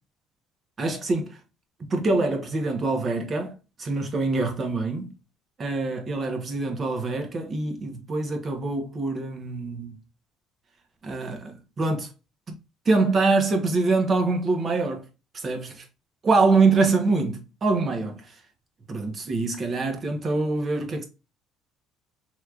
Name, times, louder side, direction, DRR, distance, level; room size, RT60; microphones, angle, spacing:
voice 1, 0.8-1.4 1.8-3.5 3.8-5.1 5.6-9.9 11.0-12.1 12.8-15.0 15.3-15.8 16.2-18.2 18.9-21.0, right 3 dB, 40° right, 1.0 m, -24 dB
3.3 x 3.1 x 2.4 m
supercardioid pair, 90°, 0 cm